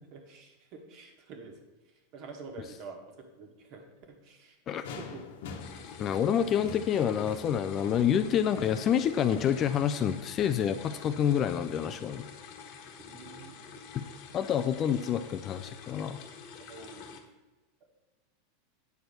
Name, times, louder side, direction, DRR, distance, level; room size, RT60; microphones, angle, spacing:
voice 1, 0.0-1.6 1.8-4.6 4.8-5.2 13.0-13.7 16.7-17.1, right 4 dB, 45° right, 4 dB, 1.6 m, -47 dB
sound 1, 4.8-10.7, left 5 dB, 70° left, 1.2 m, -45 dB
sound 2, 5.6-17.2, left 6 dB, 45° left, 1.2 m, -48 dB
voice 2, 6.0-12.3 14.3-16.2, left 9 dB, 30° left, 9 dB, 0.4 m, -28 dB
9.3 x 4.4 x 6.8 m, 1.1 s
supercardioid pair, 155°, 0 cm